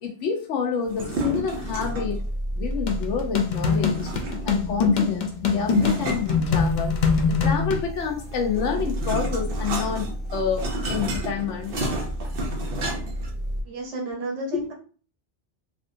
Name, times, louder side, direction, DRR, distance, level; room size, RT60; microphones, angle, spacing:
voice 1, 0.0-2.2 2.6-4.1 4.4-7.0 7.3-10.1 10.3-11.7 14.5-14.6, left 6 dB, 90° left, 3 dB, 1.1 m, -28 dB
sound 1, 0.8-2.2 3.7-4.6 5.7-7.1 8.2-13.3, right 2 dB, 55° right, 0.9 m, -32 dB
sound 2, 1.3-13.6, right 1 dB, 20° right, 1.5 m, -33 dB
sound 3, 2.9-7.9, left 5 dB, 60° left, 0.5 m, -23 dB
voice 2, 13.7-14.7, right 1 dB, 85° right, 0 dB, 1.1 m, -31 dB
3.4 x 2.5 x 2.6 m, 0.39 s
omnidirectional pair, 1.2 m